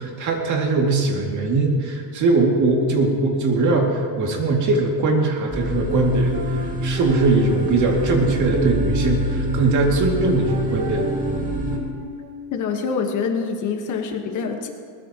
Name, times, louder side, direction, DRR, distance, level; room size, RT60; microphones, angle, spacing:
voice 1, 0.0-6.4 6.8-11.0, right 3 dB, 35° right, 0 dB, 2.4 m, -20 dB
sound 1, 5.5-11.8, right 1 dB, 15° right, 2.1 m, -26 dB
sound 2, 6.3-9.5 10.2-12.4, equal, 80° right, 3.7 m, -32 dB
voice 2, 12.5-14.7, left 5 dB, 40° left, 3 dB, 1.4 m, -25 dB
21.5 x 19.5 x 3.0 m, 2.2 s
cardioid pair, 165°, 48 cm